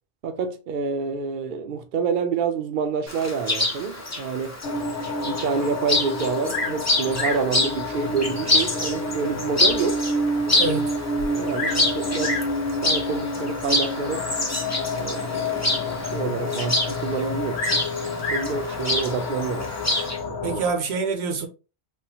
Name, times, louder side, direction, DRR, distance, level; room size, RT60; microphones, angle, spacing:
voice 1, 0.2-4.6 5.2-10.0 11.3-12.4 12.8-14.3 15.0-19.7 20.3-20.6, right 5 dB, 60° right, 0.6 m, -28 dB
Chirp tweet, 3.1-20.2, left 2 dB, 20° left, 0.5 m, -27 dB
sound 1, 4.6-20.7, left 2 dB, 85° left, 0.9 m, -29 dB
Bird vocalization bird call bird song, 6.5-6.8 7.1-7.5 8.4-8.5 9.1-9.2 9.7-9.8 10.0-10.1 11.2-11.9 12.2-12.6 13.5-13.9 17.5-18.6 19.6-20.1, left 2 dB, 55° left, 0.9 m, -30 dB
voice 2, 10.6-10.9 20.4-21.5, right 4 dB, 75° right, 1.0 m, -26 dB
3.5 x 2.1 x 2.8 m
omnidirectional pair, 1.1 m